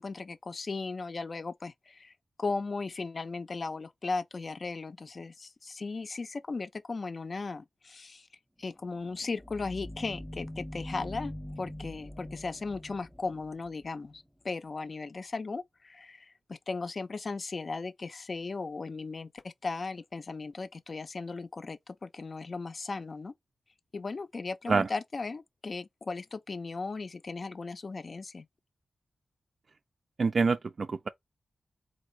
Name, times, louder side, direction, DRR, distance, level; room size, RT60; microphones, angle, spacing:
voice 1, 0.0-2.1 2.4-8.3 8.6-23.3 23.9-28.5, left 3 dB, 45° left, 0.5 m, -37 dB
sound 1, 8.8-14.3, left 1 dB, 5° right, 0.8 m, -43 dB
voice 2, 30.2-31.1, right 4 dB, 55° right, 0.3 m, -26 dB
4.0 x 2.5 x 4.4 m
wide cardioid pair, 90°, 0 cm